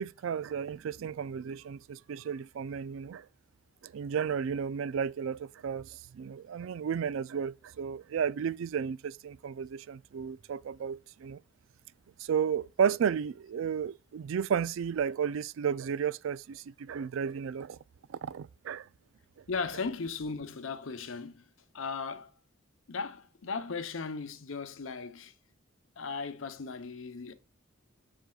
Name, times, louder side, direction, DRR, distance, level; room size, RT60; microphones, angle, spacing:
voice 1, 0.0-3.2 3.8-11.4 12.2-17.8 18.1-18.9, right 7 dB, 70° right, 0.3 m, -33 dB
voice 2, 19.5-21.5 21.7-22.3 22.9-25.3 26.0-27.3, left 4 dB, 75° left, 0.7 m, -37 dB
7.6 x 6.6 x 2.3 m
head